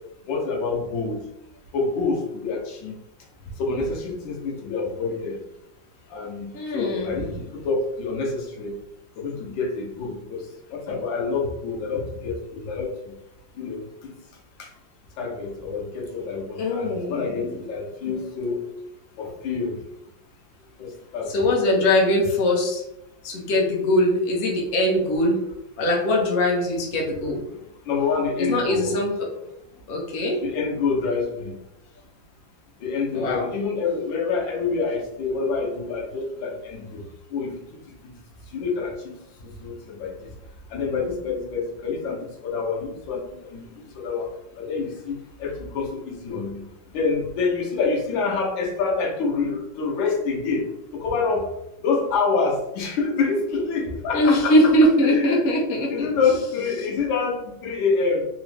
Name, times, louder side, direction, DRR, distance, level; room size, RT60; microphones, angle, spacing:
voice 1, 0.3-1.2 1.7-3.0 3.6-5.4 6.1-8.8 9.2-13.1 13.6-14.1 14.6-14.7 15.2-18.6 19.2-19.8 20.8-21.6 27.8-29.0 30.4-31.6 32.8-38.1 38.5-40.3 40.7-44.3 44.6-46.6 46.9-51.5 51.8-54.5 55.0-55.4 55.9-58.3, left 4 dB, 80° left, -1 dB, 1.5 m, -27 dB
voice 2, 6.5-7.3 16.6-17.6 18.1-18.2 21.3-22.8 23.2-25.4 25.8-27.5 28.4-29.3 29.9-30.4 33.1-33.5 54.1-56.1 56.8-56.9, left 1 dB, 55° left, -2 dB, 0.7 m, -21 dB
3.6 x 2.0 x 3.3 m, 0.88 s
omnidirectional pair, 2.1 m